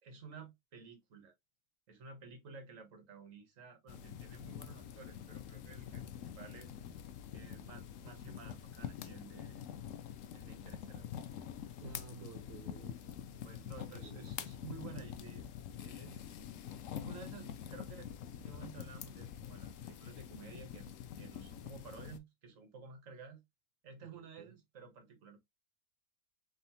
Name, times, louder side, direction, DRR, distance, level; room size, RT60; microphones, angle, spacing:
voice 1, 0.0-1.3 1.9-6.7 7.3-9.6 10.3-11.1 13.4-15.4 15.8-16.5 16.9-20.9 21.2-23.4 23.8-25.4, right 5 dB, 55° right, 1.6 m, -53 dB
sound 1, 3.9-22.2, left 9 dB, 70° left, 0.8 m, -46 dB
voice 2, 11.8-13.2 13.9-14.3 24.0-24.5, right 7 dB, 75° right, 1.1 m, -53 dB
4.2 x 3.6 x 2.7 m
omnidirectional pair, 1.8 m